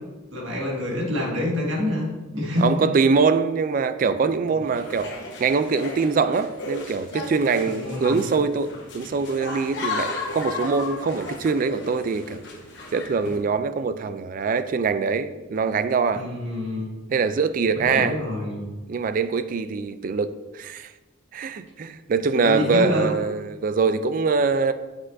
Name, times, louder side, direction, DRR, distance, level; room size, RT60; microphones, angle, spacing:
voice 1, 0.3-2.9 7.7-8.2 16.1-16.9 17.7-18.6 22.4-23.1, left 1 dB, 75° right, -3 dB, 1.9 m, -27 dB
voice 2, 2.6-5.1 5.4-12.4 12.9-16.2 17.1-18.2 18.9-20.9 21.3-24.7, right 4 dB, 45° right, 12 dB, 0.3 m, -23 dB
sound 1, 4.8-13.4, left 2 dB, 60° left, 1.1 m, -35 dB
7.6 x 6.1 x 2.6 m, 1.2 s
head